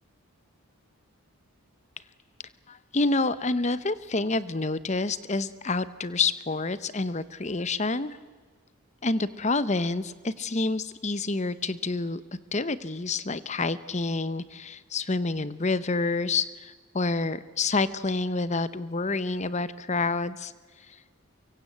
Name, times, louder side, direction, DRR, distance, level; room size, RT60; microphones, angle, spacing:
voice 1, 2.7-8.2 9.0-12.2 12.5-20.5, left 3 dB, 30° left, 16 dB, 0.9 m, -28 dB
24.5 x 23.5 x 8.0 m, 1.5 s
head